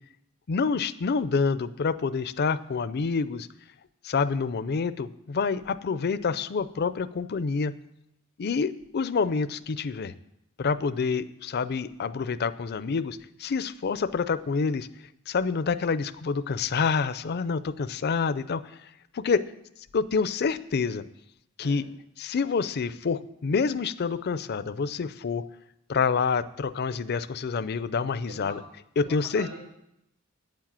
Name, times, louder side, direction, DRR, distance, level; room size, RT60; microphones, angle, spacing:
voice 1, 0.5-3.5 4.0-7.7 8.4-10.1 10.6-14.9 15.3-18.8 19.1-19.4 19.9-21.0 21.6-21.9 22.2-25.5 25.9-28.6 29.0-29.5, left 5 dB, 50° left, 15 dB, 0.5 m, -27 dB
voice 2, 28.3-28.6 29.0-29.6, right 1 dB, 90° right, -4 dB, 2.2 m, -42 dB
9.0 x 7.5 x 7.5 m, 0.81 s
head